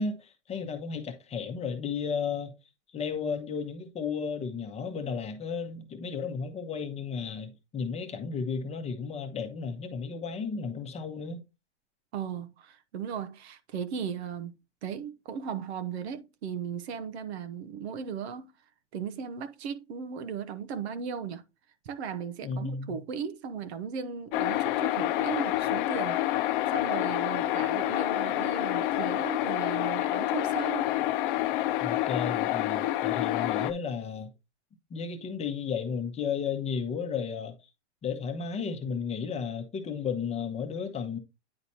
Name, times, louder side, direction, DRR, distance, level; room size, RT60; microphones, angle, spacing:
voice 1, 0.0-2.5 2.9-11.4 22.4-23.0 31.8-34.3 34.9-37.5 38.0-41.2, left 6 dB, 20° left, 1.0 m, -33 dB
voice 2, 12.1-18.5 18.9-21.4 21.8-30.9, right 7 dB, 65° right, 1.0 m, -37 dB
sound 1, 24.3-33.7, left 15 dB, 45° left, 0.7 m, -28 dB
9.7 x 4.1 x 2.9 m
hypercardioid pair, 130°, 35 cm